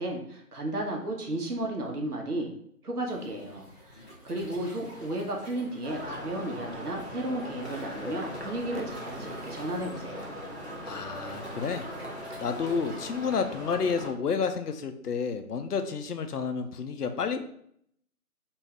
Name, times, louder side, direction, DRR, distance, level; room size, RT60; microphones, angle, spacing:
voice 1, 0.0-2.5 2.8-10.4, right 1 dB, 80° right, 1 dB, 1.0 m, -34 dB
Waves surf, 3.1-13.4, equal, 30° left, 1.1 m, -50 dB
sound 1, 5.8-14.1, equal, 45° right, 0.7 m, -40 dB
voice 2, 10.8-11.8 12.4-17.4, left 5 dB, 85° left, 7 dB, 0.6 m, -30 dB
2.6 x 2.3 x 3.2 m, 0.67 s
figure-of-eight pair, 180°, 45 cm